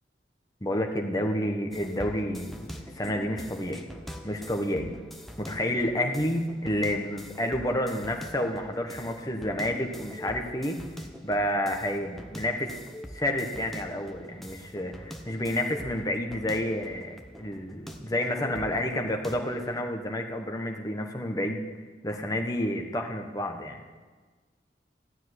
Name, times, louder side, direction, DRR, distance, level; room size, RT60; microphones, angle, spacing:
voice 1, 0.6-3.8 4.2-4.9 5.4-10.8 11.2-12.7 13.1-21.6 22.0-23.8, left 1 dB, 20° left, 3 dB, 1.3 m, -30 dB
sound 1, 1.7-19.8, equal, ahead, 1.0 m, -44 dB
15.0 x 7.3 x 10.0 m, 1.4 s
head